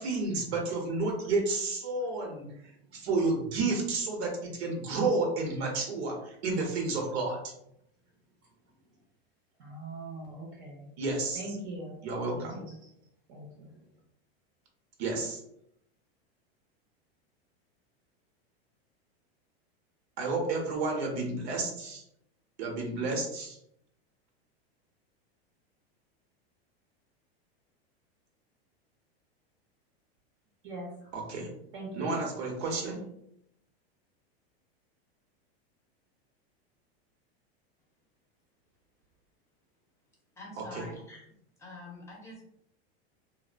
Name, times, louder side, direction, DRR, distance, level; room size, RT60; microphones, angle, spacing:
voice 1, 0.0-2.5 2.9-7.4 11.0-11.4 12.0-12.6 15.0-15.4 20.2-22.0 22.6-23.6 31.1-31.5 31.9-33.0 40.6-40.9, right 3 dB, 80° right, 0 dB, 0.8 m, -31 dB
voice 2, 9.6-10.9 11.3-12.0 12.3-12.9 13.3-13.7 30.6-31.1 31.7-32.2, right 2 dB, 40° right, -2 dB, 0.6 m, -41 dB
voice 3, 40.4-41.2 41.6-42.4, left 2 dB, 10° left, -3 dB, 0.7 m, -45 dB
2.6 x 2.0 x 2.4 m, 0.75 s
supercardioid pair, 140°, 32 cm